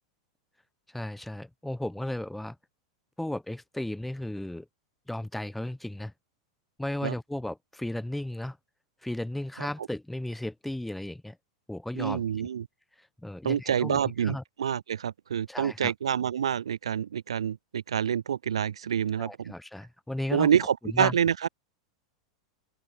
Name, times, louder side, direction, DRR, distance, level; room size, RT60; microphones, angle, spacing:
voice 1, 0.9-2.6 3.2-4.7 5.1-6.1 6.8-8.6 9.0-11.4 11.7-12.5 13.2-14.4 15.5-15.9 19.2-20.5 20.8-21.2, left 1 dB, 5° left, 2.7 m, -35 dB
voice 2, 12.0-12.7 13.4-19.5 20.3-21.5, right 8 dB, 80° right, 0.6 m, -27 dB
open air
hypercardioid pair, 100°, 3 cm